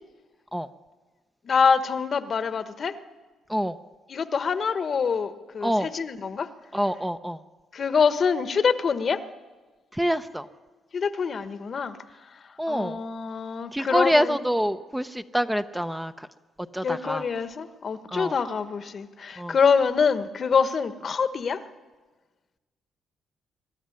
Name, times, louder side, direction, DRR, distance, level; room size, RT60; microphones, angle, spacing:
voice 1, 1.4-2.9 4.1-6.5 7.7-9.2 10.9-12.0 12.7-14.4 16.8-21.6, left 6 dB, 45° left, 1.1 m, -25 dB
voice 2, 6.7-7.4 9.9-10.5 12.6-13.0 13.7-16.3 16.7-17.2 18.1-18.4 19.4-19.6, equal, 5° right, 0.7 m, -26 dB
22.0 x 12.5 x 9.9 m
cardioid pair, 90°, 0 cm